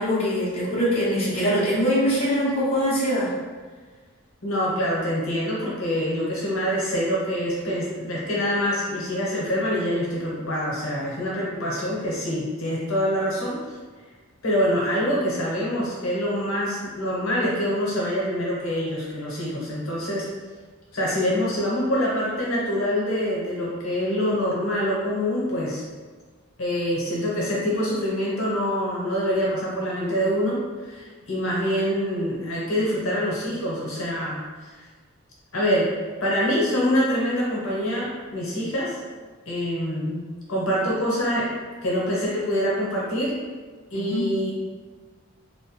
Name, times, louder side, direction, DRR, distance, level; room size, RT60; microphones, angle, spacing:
voice 1, 0.0-3.3 43.9-44.3, equal, 30° left, -9 dB, 0.6 m, -23 dB
voice 2, 4.4-13.6 14.4-20.3 20.9-25.8 26.6-34.8 35.5-38.9 39.5-41.5 41.8-43.4 43.9-44.5, equal, 80° left, -4 dB, 0.8 m, -25 dB
2.6 x 2.1 x 3.0 m, 1.4 s
head